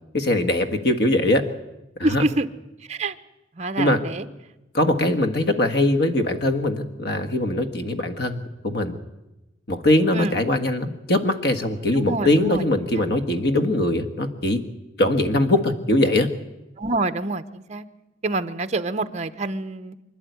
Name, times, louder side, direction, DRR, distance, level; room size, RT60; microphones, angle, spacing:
voice 1, 0.1-1.4 2.0-2.2 3.8-4.0 4.7-9.0 9.7-14.6 15.0-16.3, left 1 dB, 60° left, 7 dB, 1.6 m, -21 dB
voice 2, 2.0-2.5 2.9-3.1 3.6-4.3 10.1-10.4 12.0-12.6 13.0-13.1 16.8-17.9 18.2-19.9, right 2 dB, 40° right, 10 dB, 0.9 m, -26 dB
25.5 x 11.0 x 9.4 m, 0.99 s
head